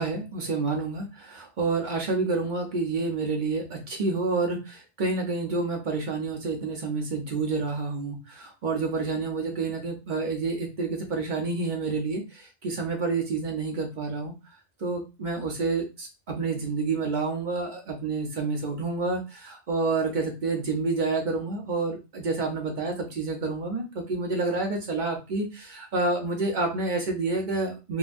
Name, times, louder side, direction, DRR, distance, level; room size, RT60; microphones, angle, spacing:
voice 1, 0.0-14.3 14.8-28.0, right 3 dB, 45° right, 2 dB, 0.8 m, -29 dB
3.8 x 2.3 x 2.5 m, 0.28 s
omnidirectional pair, 1.3 m